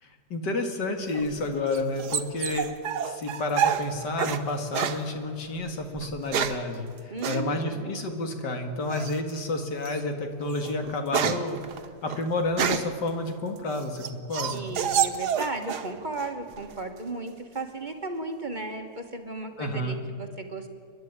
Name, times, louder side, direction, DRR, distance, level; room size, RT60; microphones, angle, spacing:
voice 1, 0.0-2.7 3.0-11.6 12.0-14.7 19.6-20.0, left 2 dB, 90° left, 5 dB, 2.5 m, -30 dB
sound 1, 1.1-4.4 4.7-5.0 6.0-6.7 7.2-7.4 8.9-9.3 9.8-10.0 10.4-13.0 13.6-15.9 16.2-16.8, right 9 dB, 75° right, 1.5 m, -29 dB
voice 2, 7.1-7.9 14.5-20.7, right 3 dB, 30° right, 5 dB, 1.5 m, -35 dB
29.5 x 11.0 x 9.6 m, 2.2 s
omnidirectional pair, 1.8 m